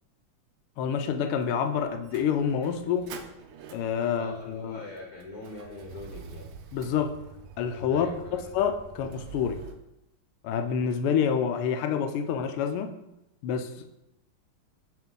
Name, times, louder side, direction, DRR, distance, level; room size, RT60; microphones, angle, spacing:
voice 1, 0.8-3.1 3.7-4.8 6.7-7.1 7.6-9.6 10.4-12.9 13.4-13.9, left 7 dB, 85° left, 7 dB, 1.5 m, -28 dB
Motor vehicle (road), 1.4-9.7, right 6 dB, 90° right, 1.6 m, -47 dB
voice 2, 4.1-6.5 7.9-8.7, left 2 dB, 55° left, -1 dB, 1.1 m, -43 dB
9.0 x 3.2 x 3.8 m, 0.89 s
omnidirectional pair, 2.4 m